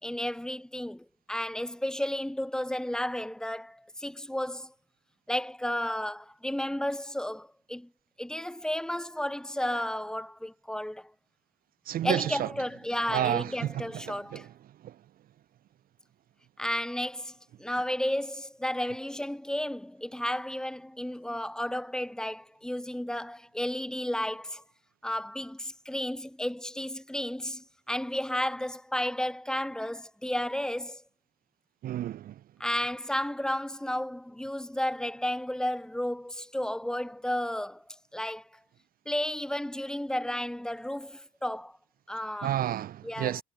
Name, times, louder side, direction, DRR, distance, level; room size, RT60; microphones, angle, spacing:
voice 1, 0.0-4.7 5.3-7.9 8.2-11.1 12.0-14.5 16.6-24.6 25.0-31.0 32.6-37.8 38.1-38.4 39.1-41.8 42.1-42.6 43.0-43.3, left 1 dB, 5° left, 2.8 m, -33 dB
voice 2, 11.9-12.5 13.1-14.5 14.8-14.9 31.8-32.3 42.4-43.4, right 12 dB, 60° right, 1.2 m, -31 dB
cardioid pair, 110°, 17 cm